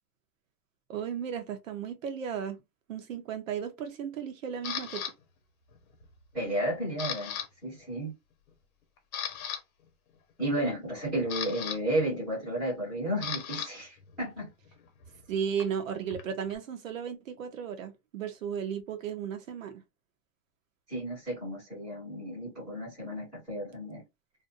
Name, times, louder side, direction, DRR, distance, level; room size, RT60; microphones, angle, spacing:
voice 1, 0.9-2.6 2.9-5.0 15.3-19.7, right 8 dB, 55° right, 0.6 m, -35 dB
Camera, 4.6-5.1 5.7-6.1 6.4-7.5 7.7-7.9 8.5-8.6 9.0-9.6 10.8-13.7 14.0-16.6, left 8 dB, 60° left, 0.8 m, -38 dB
voice 2, 6.3-7.3 7.6-8.1 10.4-14.5 20.9-24.0, right 1 dB, ahead, 0.5 m, -32 dB
2.5 x 2.2 x 2.4 m
supercardioid pair, 175°, 47 cm